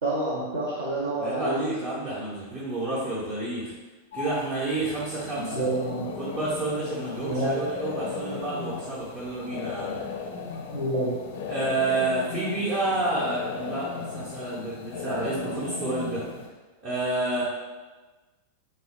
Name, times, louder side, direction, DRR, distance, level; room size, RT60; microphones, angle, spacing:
voice 1, 0.0-1.6 5.5-6.0 7.2-7.6 10.7-11.2, right 1 dB, 65° right, -8 dB, 0.7 m, -28 dB
voice 2, 1.2-3.7 4.1-5.6 6.2-10.0 11.5-16.3 16.8-17.4, right 2 dB, 35° right, -9 dB, 0.8 m, -29 dB
sound 1, 4.1-16.5, left 5 dB, 55° left, 0.4 m, -37 dB
3.3 x 2.1 x 3.0 m, 1.3 s
figure-of-eight pair, 90°, 0 cm